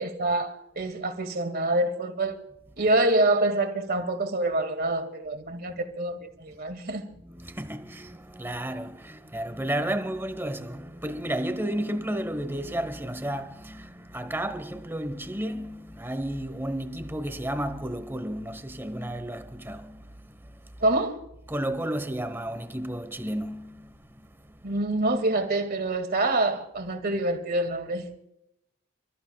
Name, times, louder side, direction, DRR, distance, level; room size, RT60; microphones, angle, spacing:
voice 1, 0.0-2.4 2.8-7.1 20.8-21.2 24.6-28.1, right 2 dB, 45° right, 2.1 m, -26 dB
voice 2, 7.2-20.8 21.5-24.7, right 1 dB, 10° right, 1.1 m, -33 dB
30.0 x 14.0 x 2.3 m
head